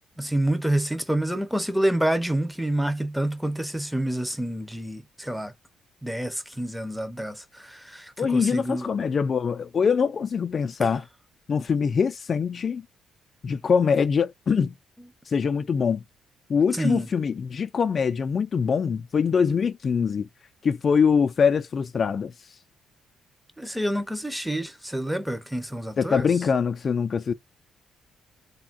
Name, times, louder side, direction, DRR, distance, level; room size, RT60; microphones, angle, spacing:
voice 1, 0.2-5.5 6.0-8.9 10.8-10.9 16.7-17.1 23.6-26.3, right 1 dB, ahead, 0.6 m, -28 dB
voice 2, 8.2-11.0 11.5-12.8 13.4-14.7 15.3-16.0 16.5-20.3 20.6-22.3 26.0-27.3, left 6 dB, 45° left, 0.3 m, -23 dB
3.4 x 2.2 x 2.4 m
cardioid pair, 90°, 0 cm